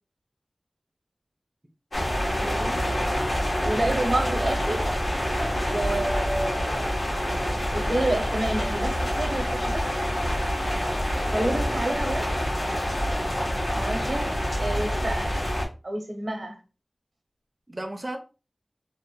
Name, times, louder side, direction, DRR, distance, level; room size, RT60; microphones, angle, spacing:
sound 1, 1.9-15.7, equal, 80° left, 1.4 m, -26 dB
voice 1, 2.1-2.8 13.7-14.0 17.7-18.2, right 1 dB, 30° right, 0.5 m, -36 dB
voice 2, 3.6-4.9 5.7-6.9 7.7-10.0 11.3-12.3 13.8-15.5 15.8-16.6, right 1 dB, 75° right, 0.7 m, -29 dB
3.1 x 2.1 x 3.0 m
wide cardioid pair, 55°, 0 cm